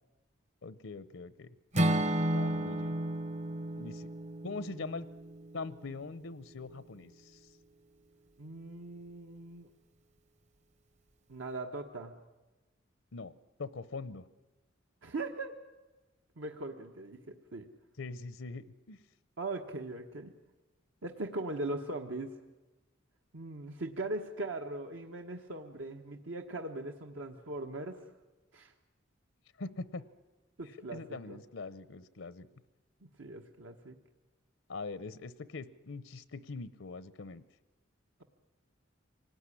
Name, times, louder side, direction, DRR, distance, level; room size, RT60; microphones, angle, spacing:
voice 1, 0.6-1.5 2.3-3.0 3.8-4.1 4.4-5.1 5.5-7.5 13.1-13.3 13.6-14.2 18.0-19.0 29.6-30.1 30.9-32.5 34.7-37.4, left 3 dB, 90° left, 16 dB, 0.8 m, -42 dB
Acoustic guitar / Strum, 1.7-5.8, right 1 dB, 35° right, 0.8 m, -32 dB
voice 2, 8.4-9.7 11.3-12.1 15.0-15.5 16.4-17.7 19.4-20.3 21.0-22.4 23.3-28.0 28.5-28.7 30.6-31.4 33.2-33.9, right 2 dB, 85° right, 3 dB, 1.3 m, -40 dB
25.0 x 19.0 x 10.0 m, 1.1 s
head